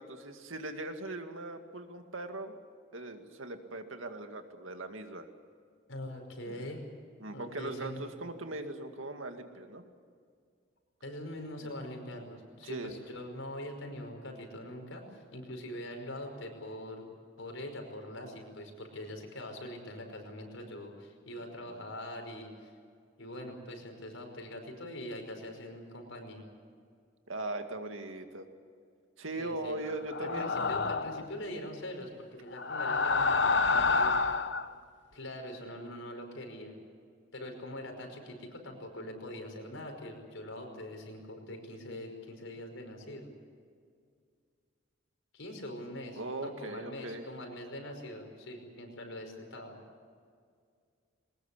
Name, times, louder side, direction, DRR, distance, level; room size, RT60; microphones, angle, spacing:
voice 1, 0.0-2.6 2.9-5.3 6.4-6.7 7.2-9.8 11.6-11.7 12.6-13.0 21.6-21.9 27.3-28.5 29.2-30.5 46.2-47.2, right 2 dB, 85° right, 6 dB, 2.2 m, -40 dB
voice 2, 5.9-6.9 7.3-8.1 11.0-17.0 17.4-22.7 23.2-26.5 29.4-29.8 30.2-34.2 35.1-36.8 37.3-43.3 45.3-49.8, left 1 dB, 85° left, 3 dB, 5.3 m, -43 dB
sound 1, 30.1-31.3 32.5-34.7, left 4 dB, 60° left, 0.9 m, -28 dB
22.0 x 20.0 x 8.5 m, 2.1 s
head